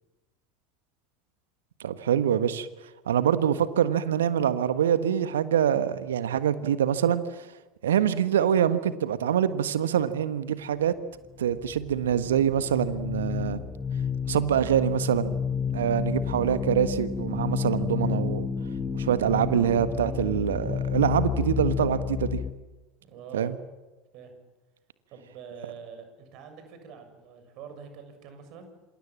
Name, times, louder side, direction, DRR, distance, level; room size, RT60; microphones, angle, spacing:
voice 1, 1.8-2.7 3.1-7.5 7.8-10.9 11.4-13.6 14.3-15.4 15.7-18.5 18.9-22.4 23.3-23.6, right 9 dB, 70° right, 13 dB, 1.5 m, -25 dB
sound 1, 11.2-22.5, left 6 dB, 20° left, 1.7 m, -30 dB
voice 2, 23.0-23.6 24.1-24.3 25.1-28.7, right 6 dB, 50° right, 7 dB, 7.0 m, -45 dB
27.5 x 27.0 x 7.7 m, 1.1 s
figure-of-eight pair, 75°, 0 cm